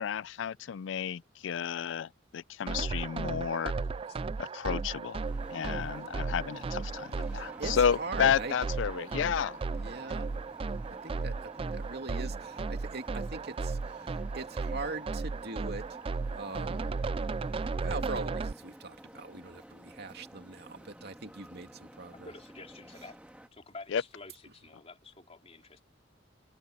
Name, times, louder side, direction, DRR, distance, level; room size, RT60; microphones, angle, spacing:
voice 1, 0.0-3.7 4.4-5.2 5.5-9.6 23.9-24.0, left 7 dB, 70° left, 0.4 m, -31 dB
sound 1, 2.7-18.5, right 4 dB, 30° right, 0.3 m, -35 dB
sound 2, 5.2-23.5, equal, 5° right, 1.8 m, -52 dB
voice 2, 7.6-8.5 9.8-10.3 11.0-11.3 11.7-13.8 14.3-15.9 16.3-17.0 17.8-22.3, right 3 dB, 60° right, 2.6 m, -41 dB
voice 3, 22.1-23.2 23.5-25.8, left 3 dB, 35° left, 3.2 m, -49 dB
head